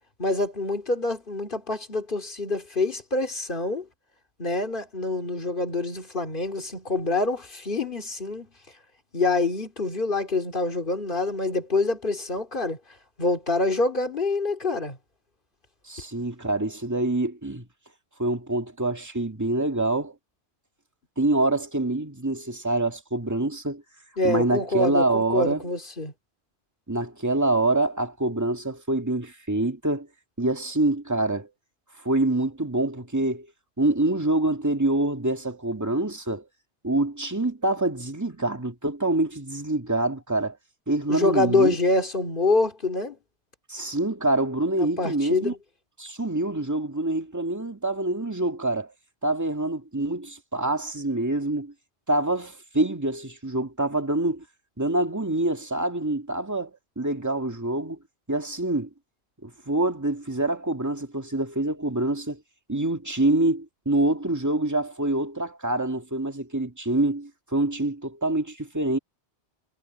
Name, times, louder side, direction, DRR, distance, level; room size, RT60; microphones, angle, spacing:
voice 1, 0.2-3.9 4.4-8.5 9.1-12.8 13.2-15.0 24.2-26.1 41.1-43.2 44.8-45.6, left 2 dB, 50° left, 2.7 m, -26 dB
voice 2, 15.9-17.7 18.2-20.1 21.2-23.8 24.2-25.6 26.9-30.1 30.4-31.5 32.0-33.5 33.8-36.5 36.8-40.6 40.9-41.8 43.7-45.5 46.0-48.9 49.2-51.7 52.1-54.4 54.8-58.0 58.3-58.9 59.4-62.4 62.7-69.0, right 2 dB, 15° right, 2.2 m, -26 dB
omnidirectional pair, 1.1 m